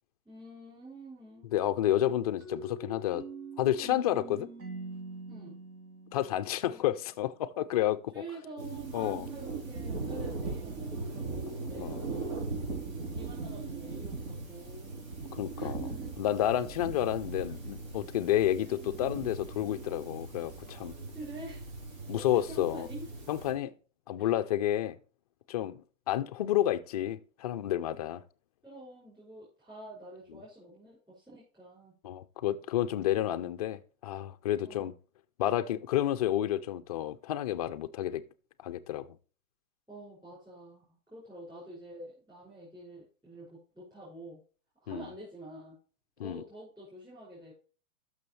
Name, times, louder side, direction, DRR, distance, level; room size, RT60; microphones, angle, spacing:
voice 1, 0.2-1.6 5.3-5.6 6.6-6.9 8.1-12.4 13.1-15.0 15.5-16.1 21.1-21.8 22.1-23.0 24.2-24.4 28.6-31.9 34.6-34.9 39.9-44.4 44.8-45.8 46.2-47.5, right 1 dB, 10° right, 5.8 m, -47 dB
voice 2, 1.5-3.2 3.6-4.5 6.1-8.1 8.9-9.3 11.8-12.0 15.3-15.8 16.2-21.0 22.1-22.9 23.3-23.7 24.1-25.0 25.5-28.2 32.0-34.9 35.4-38.2 38.6-39.1 44.9-45.1 46.2-46.4, left 12 dB, 30° left, 0.4 m, -30 dB
sound 1, 2.4-7.1, right 2 dB, 90° right, 3.0 m, -44 dB
sound 2, 8.6-23.5, right 3 dB, 70° right, 4.1 m, -39 dB
12.5 x 6.3 x 3.2 m
hypercardioid pair, 150°, 42 cm